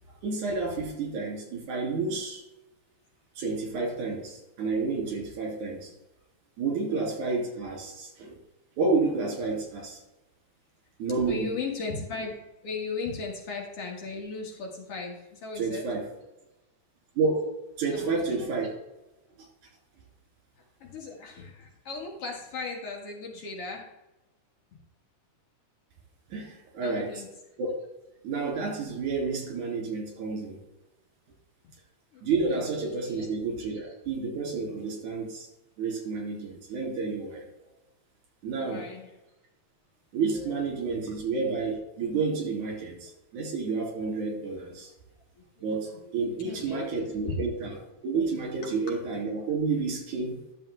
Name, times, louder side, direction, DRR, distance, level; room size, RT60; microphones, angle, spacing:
voice 1, 0.1-2.4 3.4-5.9 6.6-8.4 8.8-10.0 11.0-11.5 15.6-16.1 17.2-17.5 17.8-18.8 26.3-27.2 27.6-27.8 28.2-30.6 32.2-35.5 35.8-37.5 38.4-38.9 40.1-44.9 45.6-47.8 48.0-50.4, right 4 dB, 85° right, 0 dB, 3.8 m, -30 dB
voice 2, 6.9-7.3 11.3-12.3 12.6-15.9 17.9-18.1 20.8-23.9 24.7-24.8 26.8-27.3 32.1-32.2 32.5-32.7 33.0-33.3 38.5-39.1 41.1-41.2 45.6-46.9 47.3-47.4, left 4 dB, 55° left, 0 dB, 2.4 m, -37 dB
11.0 x 6.8 x 3.3 m, 0.97 s
omnidirectional pair, 3.3 m